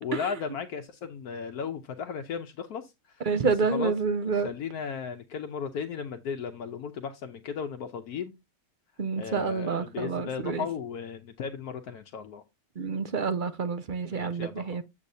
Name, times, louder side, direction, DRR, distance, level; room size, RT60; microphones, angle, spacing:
voice 1, 0.0-3.3 3.7-3.9 4.3-8.3 9.2-12.4 14.1-14.8, left 6 dB, 75° left, 1.3 m, -36 dB
voice 2, 3.3-4.5 9.0-10.7 12.8-14.8, right 5 dB, 50° right, 0.6 m, -28 dB
8.5 x 7.6 x 2.7 m
omnidirectional pair, 1.6 m